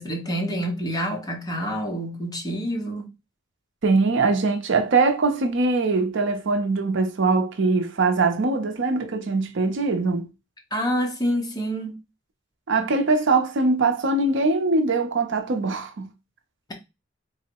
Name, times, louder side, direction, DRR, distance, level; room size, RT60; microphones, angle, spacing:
voice 1, 0.0-3.1 10.7-12.0, equal, 20° left, 0.9 m, -27 dB
voice 2, 3.8-10.3 12.7-16.1, right 3 dB, 65° right, 0.6 m, -22 dB
3.8 x 2.0 x 4.4 m
head